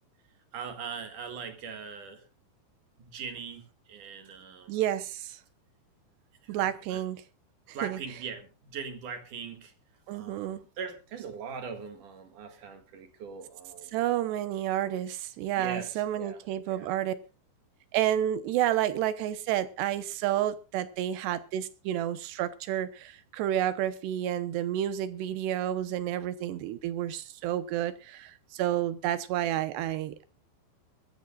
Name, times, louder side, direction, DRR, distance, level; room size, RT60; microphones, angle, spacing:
voice 1, 0.5-2.2 3.0-4.8 6.4-7.0 7.7-9.7 10.1-13.9 15.5-16.4 16.7-16.9, right 6 dB, 55° right, 2.8 m, -41 dB
voice 2, 4.7-5.4 6.5-7.2 7.7-8.0 10.1-10.6 13.9-17.1 17.9-30.2, right 12 dB, 75° right, 3.0 m, -30 dB
23.0 x 13.0 x 2.4 m
omnidirectional pair, 5.2 m